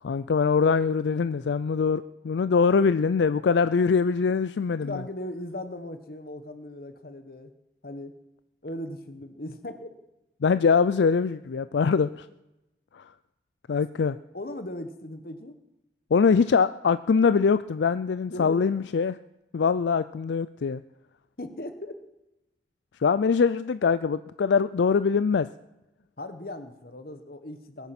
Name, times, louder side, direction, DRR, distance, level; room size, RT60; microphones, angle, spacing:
voice 1, 0.0-5.0 10.4-12.3 12.9-13.0 13.7-14.2 16.1-19.1 19.5-20.8 23.0-25.5, left 5 dB, 80° left, 14 dB, 0.4 m, -23 dB
voice 2, 4.6-7.5 7.8-8.1 8.6-9.9 14.0-15.5 18.3-18.7 21.4-22.0 26.2-27.9, left 1 dB, 55° left, 10 dB, 1.3 m, -38 dB
21.5 x 9.1 x 5.9 m, 0.95 s
head